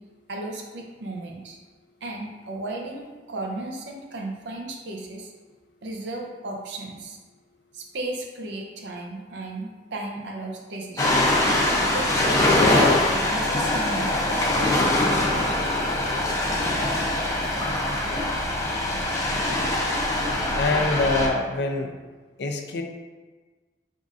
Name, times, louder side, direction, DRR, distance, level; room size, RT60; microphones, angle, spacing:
voice 1, 0.3-1.6 2.0-5.3 5.8-7.2 7.7-11.4 11.9-15.6, right 2 dB, 85° right, 0 dB, 0.6 m, -35 dB
Ocean, 11.0-21.3, left 1 dB, 20° left, 0.5 m, -23 dB
voice 2, 20.6-21.9 22.4-22.8, left 3 dB, 70° left, 3 dB, 0.5 m, -25 dB
5.2 x 3.6 x 2.5 m, 1.3 s
head